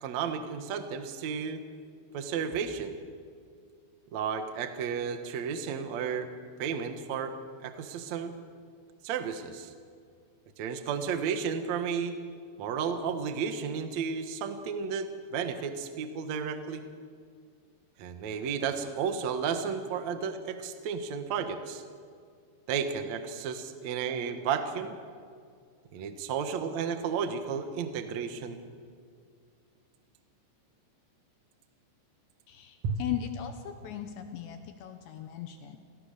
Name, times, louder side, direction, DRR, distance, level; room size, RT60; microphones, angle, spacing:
voice 1, 0.0-1.6 2.1-3.0 4.1-6.3 6.6-7.3 7.6-8.3 9.0-9.7 10.6-12.2 12.6-16.8 18.0-21.8 22.7-25.0 25.9-28.6 32.8-33.0, right 6 dB, 80° right, 7 dB, 1.5 m, -33 dB
voice 2, 32.5-35.8, left 11 dB, 75° left, 7 dB, 3.0 m, -38 dB
28.5 x 18.5 x 6.8 m, 2.2 s
omnidirectional pair, 5.7 m